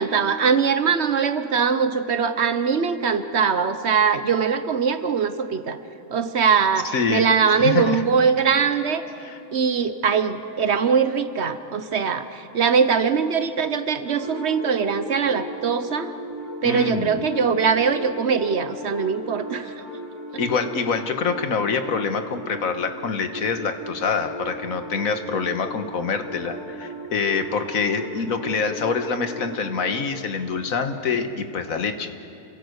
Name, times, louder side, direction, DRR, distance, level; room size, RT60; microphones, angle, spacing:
voice 1, 0.0-5.8 6.1-9.0 9.5-16.1 16.6-19.7, right 6 dB, 55° right, 11 dB, 1.1 m, -22 dB
voice 2, 6.8-8.0 9.2-9.4 16.6-17.2 20.4-32.3, left 5 dB, 85° left, 7 dB, 1.7 m, -26 dB
sound 1, 14.1-30.1, equal, 20° right, 4.8 m, -36 dB
27.5 x 17.0 x 8.1 m, 2.8 s
omnidirectional pair, 1.4 m